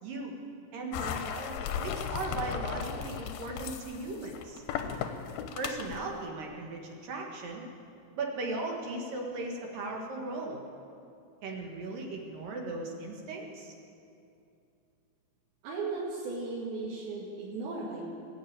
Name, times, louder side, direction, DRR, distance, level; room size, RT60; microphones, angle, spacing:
voice 1, 0.0-0.3 0.7-4.6 5.6-7.6 8.2-10.6 11.4-13.7, right 2 dB, 60° right, 0 dB, 3.0 m, -37 dB
sound 1, 0.9-6.0, left 7 dB, 75° left, 2.4 m, -36 dB
voice 2, 15.6-18.0, right 3 dB, 85° right, -8 dB, 4.2 m, -36 dB
20.0 x 6.8 x 8.8 m, 2.6 s
omnidirectional pair, 4.9 m